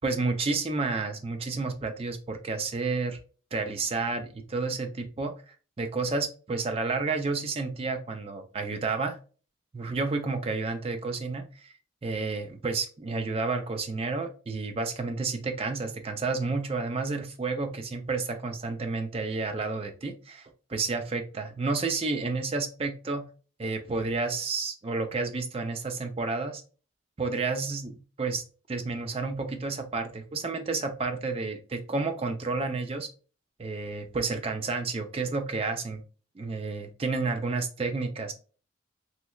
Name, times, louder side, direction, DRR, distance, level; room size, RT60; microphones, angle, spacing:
voice 1, 0.0-3.2 3.5-9.2 9.7-11.7 12.0-23.2 23.6-26.6 27.2-33.1 33.6-36.0 36.4-38.3, right 3 dB, 30° right, 6 dB, 0.4 m, -31 dB
3.2 x 3.1 x 2.3 m, 0.37 s
head